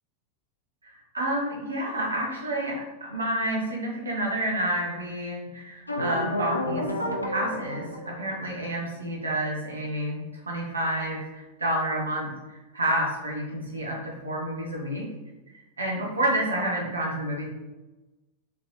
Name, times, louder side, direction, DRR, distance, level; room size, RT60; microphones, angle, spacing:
voice 1, 0.8-6.9 7.2-12.3 12.7-15.1 15.8-17.5, right 1 dB, 75° right, -2 dB, 1.2 m, -29 dB
sound 1, 5.9-8.6, equal, 85° left, 0.5 m, -30 dB
4.9 x 3.3 x 3.0 m, 1.1 s
figure-of-eight pair, 90°, 0 cm